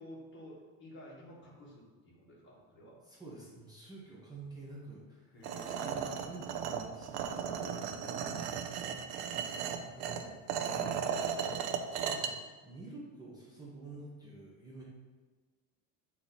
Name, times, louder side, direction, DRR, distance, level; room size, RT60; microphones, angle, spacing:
voice 1, 0.0-3.0 5.3-6.0 7.5-8.5 9.2-10.4, left 1 dB, 30° left, -5 dB, 1.8 m, -52 dB
voice 2, 3.1-5.3 5.6-7.6 9.4-10.3 10.6-11.3 12.0-14.8, right 2 dB, 10° right, -6 dB, 1.0 m, -49 dB
sound 1, 5.4-12.3, right 7 dB, 65° right, 0.6 m, -36 dB
8.4 x 3.0 x 4.0 m, 1.4 s
cardioid pair, 155°, 41 cm